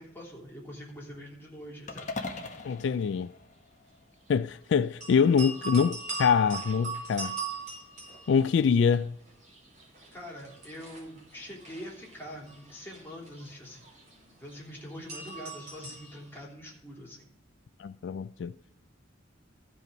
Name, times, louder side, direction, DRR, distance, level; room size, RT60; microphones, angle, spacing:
voice 1, 0.0-2.1 10.1-13.8 14.4-17.3, equal, 10° left, 3.2 m, -44 dB
sound 1, 1.9-4.2, left 3 dB, 40° left, 1.1 m, -40 dB
voice 2, 2.6-3.3 4.3-7.3 8.3-9.1 17.8-18.5, left 6 dB, 65° left, 0.3 m, -25 dB
sound 2, 5.0-9.0 9.3-16.4, right 4 dB, 40° right, 4.6 m, -40 dB
14.5 x 5.5 x 5.2 m
head